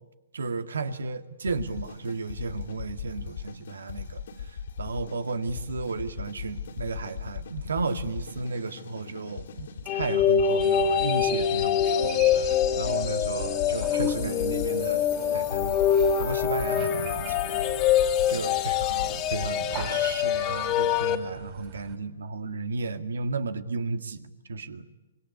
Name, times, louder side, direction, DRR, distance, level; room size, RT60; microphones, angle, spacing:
voice 1, 0.3-15.8 16.2-17.5 18.3-24.9, right 3 dB, 80° right, 9 dB, 1.9 m, -34 dB
sound 1, 1.4-20.1, left 7 dB, 65° left, 3.2 m, -39 dB
sound 2, 9.9-21.2, left 8 dB, 30° left, 1.9 m, -25 dB
sound 3, 10.6-22.0, right 10 dB, 30° right, 3.8 m, -44 dB
25.0 x 21.5 x 9.5 m, 1.1 s
hypercardioid pair, 135°, 0 cm